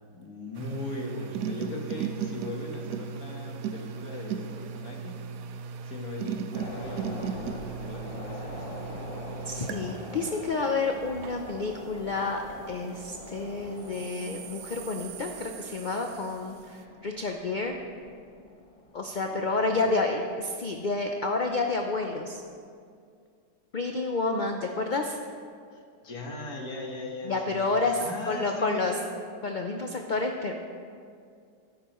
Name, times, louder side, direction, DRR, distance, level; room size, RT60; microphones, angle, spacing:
voice 1, 0.1-5.2 5.8-8.6 19.3-19.4 19.7-20.0 25.7-29.2, left 2 dB, 70° left, 1 dB, 1.8 m, -39 dB
sound 1, 0.5-13.2 13.8-16.6, right 6 dB, 85° right, 1.2 m, -38 dB
sound 2, 6.5-21.1 21.4-21.6, left 1 dB, 25° left, 1.0 m, -44 dB
voice 2, 9.4-12.4 12.7-17.8 18.9-22.4 23.7-25.2 27.2-29.0 29.4-30.5, left 3 dB, 90° left, 3 dB, 0.4 m, -29 dB
13.5 x 10.5 x 3.0 m, 2.3 s
omnidirectional pair, 1.7 m